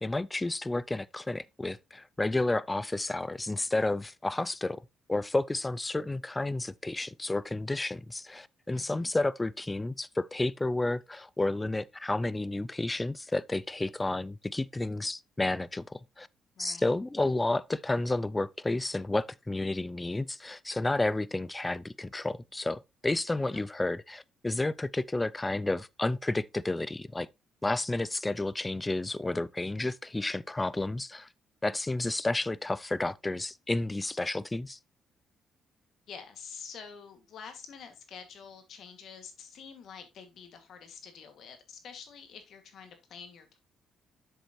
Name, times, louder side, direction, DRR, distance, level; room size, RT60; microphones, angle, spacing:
voice 1, 0.0-4.8 5.1-16.3 16.6-27.3 27.6-31.3 31.6-34.8, left 2 dB, 15° left, 0.4 m, -31 dB
voice 2, 8.7-9.1 16.6-16.9 23.4-23.6 36.1-43.6, left 6 dB, 70° left, 2.1 m, -47 dB
7.8 x 6.8 x 3.1 m
cardioid pair, 90°, 0 cm